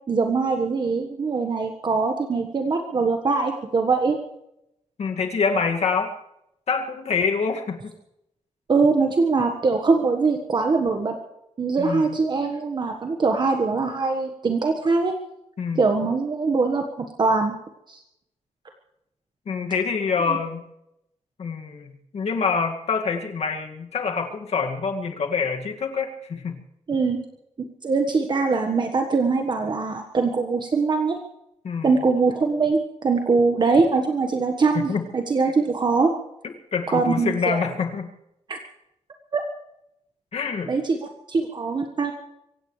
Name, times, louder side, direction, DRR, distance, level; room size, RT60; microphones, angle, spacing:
voice 1, 0.1-4.2 8.7-11.2 11.6-15.1 15.8-17.5 17.9-18.0 20.3-20.4 26.9-27.2 27.8-31.2 31.8-36.1 36.9-37.7 38.5-38.6 39.3-39.4 40.7-42.1, right 4 dB, 35° right, 4 dB, 1.5 m, -22 dB
voice 2, 5.0-6.2 6.7-7.9 11.8-12.2 15.6-15.8 19.5-20.7 21.4-26.6 31.6-31.9 34.7-35.1 36.7-38.1 40.3-40.7, left 5 dB, 60° left, 4 dB, 2.1 m, -26 dB
24.5 x 17.5 x 3.3 m, 0.83 s
wide cardioid pair, 175°, 13 cm